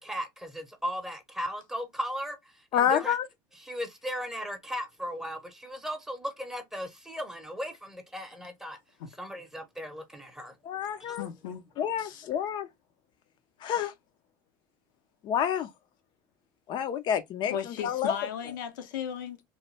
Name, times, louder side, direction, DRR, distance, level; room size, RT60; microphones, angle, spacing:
voice 1, 0.0-3.2 3.6-8.8 9.2-10.5 11.0-11.2, equal, 5° right, 0.8 m, -37 dB
voice 2, 2.7-3.3 10.6-11.3 11.8-12.7 13.6-13.9 15.2-15.7 16.7-18.1, left 9 dB, 50° left, 0.5 m, -28 dB
voice 3, 11.2-11.6 12.0-12.3 17.5-19.4, left 9 dB, 85° left, 0.8 m, -36 dB
3.0 x 2.2 x 3.1 m
supercardioid pair, 100°, 10 cm